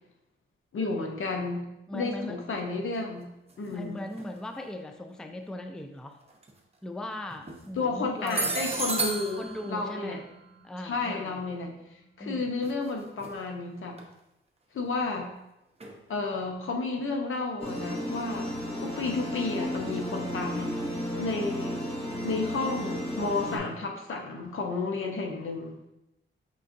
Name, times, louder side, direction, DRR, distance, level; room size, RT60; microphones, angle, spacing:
voice 1, 0.7-1.7 1.9-3.3 3.6-4.0 7.8-10.2 10.8-11.7 12.2-14.0 14.7-15.3 16.1-20.8 21.2-21.8 22.2-25.8, left 3 dB, 70° left, 2 dB, 0.8 m, -32 dB
voice 2, 1.9-2.4 3.6-6.2 6.8-8.5 9.4-10.2 10.6-11.4 12.2-12.5 16.4-16.5, left 1 dB, 5° left, 4 dB, 0.4 m, -39 dB
sound 1, 4.2-4.3 6.3-6.5 7.3-7.7 8.2-11.2 12.6-12.9 13.2-13.3 14.0-14.1 15.8-16.0, right 3 dB, 30° right, 0.7 m, -33 dB
sound 2, 17.6-23.6, equal, 30° left, 1.3 m, -33 dB
5.5 x 3.6 x 2.6 m, 0.89 s
wide cardioid pair, 100°, 21 cm